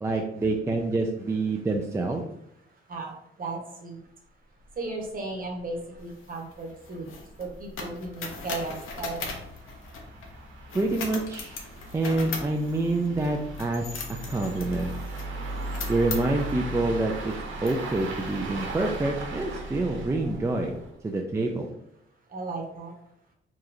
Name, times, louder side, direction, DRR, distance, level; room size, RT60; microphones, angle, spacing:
voice 1, 0.0-2.2 10.7-11.6 11.9-14.9 15.9-17.3 17.6-20.7 21.0-21.7, right 2 dB, 15° right, 2 dB, 0.3 m, -27 dB
voice 2, 2.9-4.0 4.8-7.1 7.4-9.4 22.3-22.9, right 3 dB, 45° right, 1 dB, 1.0 m, -35 dB
sound 1, 4.7-4.8 5.0-5.1 5.6-5.7 6.0-6.1 6.7-21.1, right 1 dB, 75° right, 1.0 m, -38 dB
sound 2, 6.0-10.3 10.7-16.5 17.1-17.3 17.6-18.3, left 4 dB, 80° left, 0.8 m, -39 dB
4.8 x 3.0 x 2.6 m, 0.75 s
cardioid pair, 135°, 21 cm